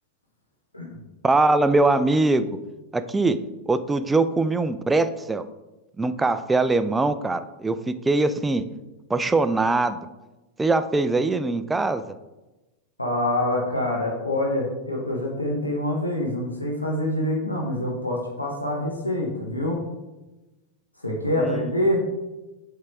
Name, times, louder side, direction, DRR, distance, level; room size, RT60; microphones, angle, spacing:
voice 1, 1.2-2.6 2.9-3.4 3.7-5.5 6.0-8.7 9.1-10.1 10.6-12.0 21.4-21.6, right 3 dB, 10° right, 11 dB, 0.4 m, -22 dB
voice 2, 13.0-19.8 21.0-22.0, left 1 dB, 85° left, -2 dB, 1.2 m, -26 dB
7.4 x 3.7 x 4.5 m, 1.1 s
figure-of-eight pair, 90°, 0 cm